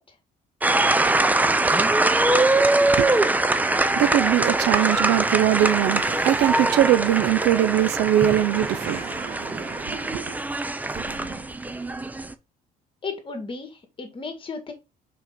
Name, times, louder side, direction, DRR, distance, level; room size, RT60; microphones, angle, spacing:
sound 1, 0.6-12.3, right 2 dB, 10° right, 0.6 m, -22 dB
voice 1, 2.6-10.4, right 13 dB, 85° right, 0.6 m, -23 dB
sound 2, 5.2-11.7, right 4 dB, 35° right, 1.8 m, -45 dB
voice 2, 13.0-14.7, left 4 dB, 30° left, 1.9 m, -34 dB
5.6 x 4.4 x 5.2 m
cardioid pair, 110°, 17 cm